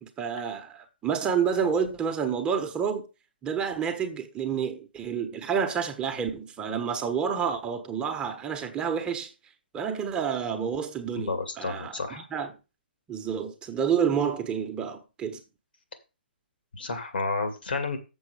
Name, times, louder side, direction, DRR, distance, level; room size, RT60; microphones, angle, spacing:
voice 1, 0.0-3.1 3.4-9.3 9.7-12.0 12.3-12.5 13.1-15.4, right 7 dB, 15° right, 1.3 m, -29 dB
voice 2, 11.2-12.3 16.7-18.0, left 3 dB, 70° left, 2.3 m, -31 dB
7.2 x 7.0 x 5.0 m
figure-of-eight pair, 125°, 6 cm